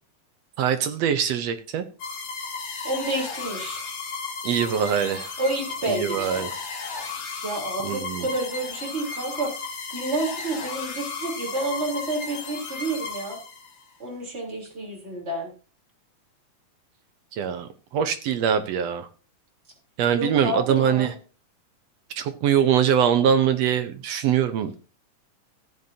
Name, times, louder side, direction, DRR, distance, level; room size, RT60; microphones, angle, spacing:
voice 1, 0.6-1.8 4.4-5.3 5.9-6.5 7.8-8.2 17.3-19.1 20.0-21.1 22.2-24.7, right 8 dB, 70° right, 9 dB, 1.6 m, -23 dB
sound 1, 2.0-13.8, left 4 dB, 65° left, 3.2 m, -34 dB
voice 2, 2.8-3.8 5.4-6.4 7.4-13.4 14.0-15.5 20.1-21.1, right 2 dB, 20° right, -1 dB, 3.6 m, -29 dB
15.0 x 9.2 x 2.8 m, 0.36 s
omnidirectional pair, 3.7 m